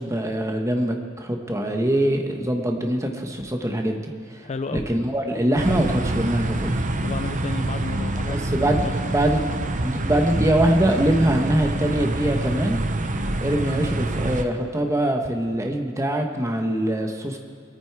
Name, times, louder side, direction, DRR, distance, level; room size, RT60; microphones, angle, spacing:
voice 1, 0.0-4.4 4.7-6.9 8.3-9.5 9.8-12.8 13.4-17.4, right 1 dB, 15° right, 3 dB, 1.1 m, -23 dB
voice 2, 4.4-4.8 7.0-9.1, left 3 dB, 30° left, 9 dB, 0.4 m, -33 dB
sound 1, 5.6-14.5, right 1 dB, 35° right, 0.7 m, -26 dB
21.0 x 9.4 x 4.7 m, 2.2 s
head